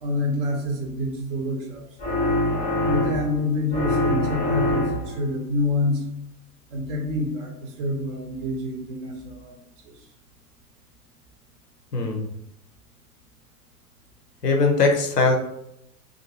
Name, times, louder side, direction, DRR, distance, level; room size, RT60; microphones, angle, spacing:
voice 1, 0.0-1.8 2.8-6.0 6.7-9.6, left 2 dB, 35° right, 1 dB, 0.6 m, -27 dB
sound 1, 2.0-3.4 3.7-5.2, left 1 dB, 15° left, 0.5 m, -24 dB
voice 2, 11.9-12.3 14.4-15.4, left 3 dB, 80° left, 3 dB, 0.7 m, -20 dB
2.5 x 2.4 x 2.7 m, 0.79 s
figure-of-eight pair, 95°, 47 cm